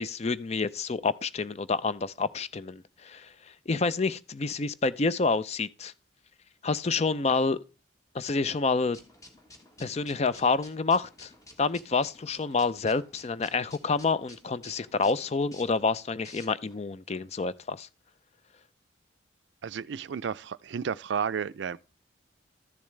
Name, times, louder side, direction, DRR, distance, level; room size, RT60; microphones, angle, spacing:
voice 1, 0.0-3.3 3.7-5.9 6.6-7.6 8.1-9.0 9.8-11.3 11.6-17.9, left 4 dB, 35° left, 0.4 m, -28 dB
sound 1, 8.9-16.8, left 1 dB, 20° left, 1.5 m, -53 dB
voice 2, 19.6-21.8, right 7 dB, 70° right, 0.4 m, -32 dB
13.0 x 7.1 x 3.2 m
head